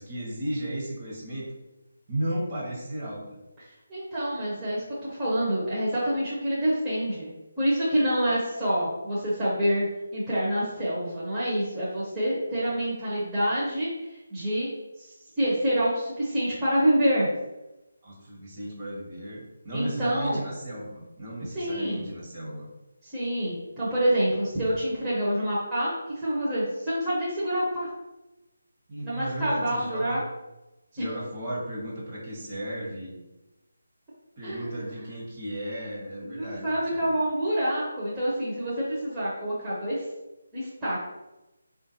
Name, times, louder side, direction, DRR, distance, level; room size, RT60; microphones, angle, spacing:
voice 1, 0.0-1.5 2.1-3.4 18.0-22.7 28.9-30.2 30.9-33.2 34.4-37.1, right 1 dB, 35° right, -4 dB, 1.1 m, -34 dB
voice 2, 3.9-7.3 7.6-9.9 10.1-14.7 15.0-17.3 19.7-20.4 21.5-22.0 23.0-27.9 29.0-30.2 31.0-31.1 34.4-34.8 36.2-40.0 40.5-41.0, equal, 15° right, -11 dB, 0.8 m, -27 dB
3.5 x 2.5 x 2.8 m, 1.0 s
figure-of-eight pair, 155°, 0 cm